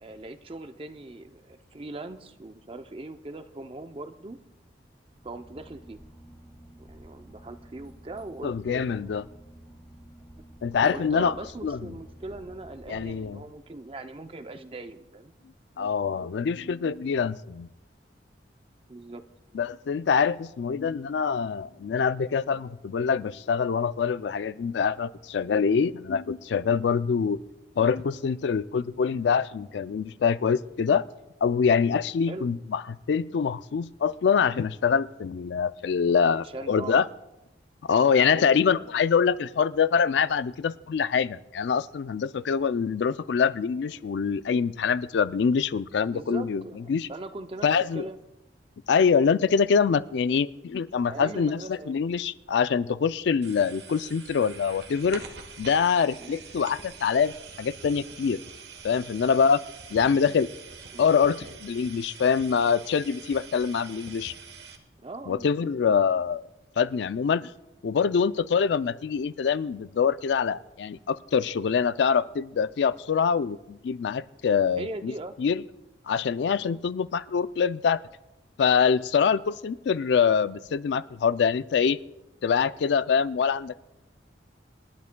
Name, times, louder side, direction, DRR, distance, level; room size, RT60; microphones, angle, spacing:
voice 1, 0.0-4.4 5.2-6.0 6.8-9.2 10.8-15.3 18.9-19.2 32.3-32.5 36.3-37.0 38.3-38.5 46.1-47.7 47.9-48.2 51.0-52.0 56.2-56.4 60.9-61.1 65.0-65.7 74.8-75.4 76.6-76.8, right 2 dB, 30° right, 9 dB, 0.5 m, -40 dB
Boat Water vehicle / Engine, 5.0-13.9, right 1 dB, 20° left, 3.7 m, -50 dB
voice 2, 8.4-9.2 10.6-11.3 11.6-11.8 12.9-13.4 15.8-17.7 19.5-27.4 27.8-31.0 31.4-32.8 33.1-37.1 37.8-46.6 46.9-47.1 47.6-48.0 48.9-55.2 55.6-58.4 58.8-59.6 59.9-60.5 61.0-64.3 65.3-66.4 66.8-67.5 67.8-75.1 75.4-75.6 76.1-78.0 78.6-82.0 82.4-83.8, left 6 dB, 70° left, 15 dB, 0.3 m, -25 dB
sound 1, 53.4-64.8, right 5 dB, 65° right, 1.2 m, -45 dB
27.0 x 11.0 x 2.2 m, 0.94 s
head